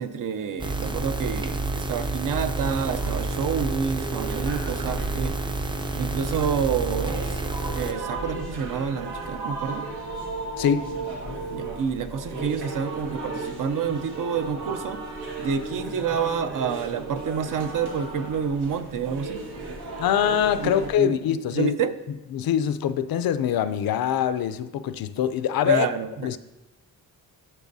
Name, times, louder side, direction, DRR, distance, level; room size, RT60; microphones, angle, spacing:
voice 1, 0.0-5.4 6.0-7.4 7.7-9.9 11.5-15.0 15.4-19.4 20.6-21.2 21.5-21.9 25.6-26.4, right 7 dB, 60° right, 0.6 m, -28 dB
sound 1, 0.6-7.9, right 2 dB, 15° right, 0.4 m, -29 dB
sound 2, 2.5-20.9, right 2 dB, 90° right, 1.5 m, -35 dB
voice 2, 10.6-10.9 20.0-21.8 22.3-25.9 26.2-26.4, left 9 dB, 70° left, 0.5 m, -23 dB
12.0 x 6.5 x 2.7 m
wide cardioid pair, 155°, 37 cm